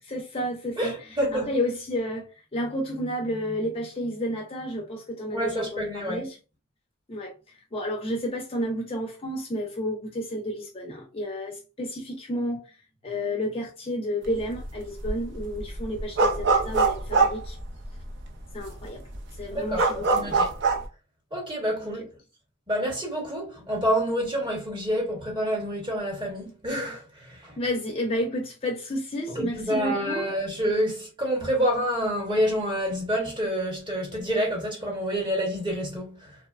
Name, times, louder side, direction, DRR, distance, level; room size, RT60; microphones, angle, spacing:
voice 1, 0.1-6.4 7.1-12.7 13.0-17.6 18.5-19.0 19.4-20.4 21.8-21.9 27.6-30.3, equal, 30° left, 0.4 m, -31 dB
voice 2, 0.8-1.5 5.3-6.3 19.5-20.5 21.3-22.0 22.7-27.6 29.3-36.4, equal, 25° right, 1.0 m, -28 dB
sound 1, 14.3-14.7 15.0-18.2 18.6-18.7 19.0-20.9, right 4 dB, 60° right, 0.5 m, -23 dB
2.8 x 2.1 x 2.3 m
head